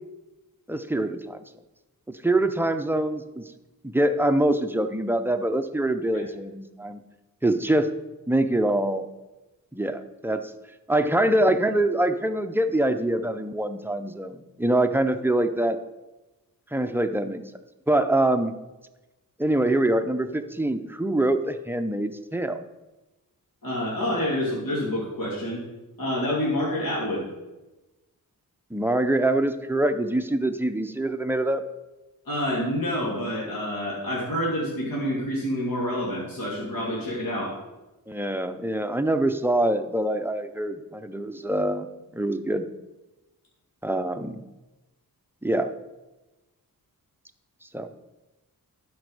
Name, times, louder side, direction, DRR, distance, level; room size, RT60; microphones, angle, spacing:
voice 1, 0.7-1.4 2.1-3.4 3.8-7.0 7.4-7.9 8.3-9.0 9.7-10.4 10.9-15.8 16.7-17.4 17.9-18.6 19.4-22.6 28.7-31.6 38.1-41.9 42.1-42.6 43.8-44.4 45.4-45.7 47.7-47.9, right 1 dB, 5° right, 8 dB, 0.5 m, -24 dB
voice 2, 23.6-25.6 26.0-27.3 32.3-37.5, equal, 70° left, -6 dB, 2.7 m, -28 dB
11.5 x 5.3 x 4.8 m, 1.1 s
wide cardioid pair, 100°, 35 cm